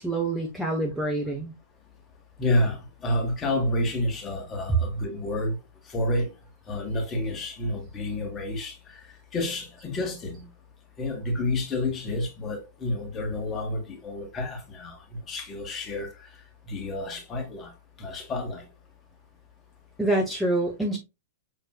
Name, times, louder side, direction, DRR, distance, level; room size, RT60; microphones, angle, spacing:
voice 1, 0.0-1.5 20.0-21.0, right 2 dB, 5° right, 0.9 m, -26 dB
voice 2, 2.4-5.6 5.9-6.3 6.7-9.0 9.3-10.5 11.0-15.0 15.3-16.3 16.7-17.7 18.0-18.7, left 1 dB, 20° left, 1.5 m, -29 dB
6.2 x 3.2 x 2.3 m
figure-of-eight pair, 105°, 0 cm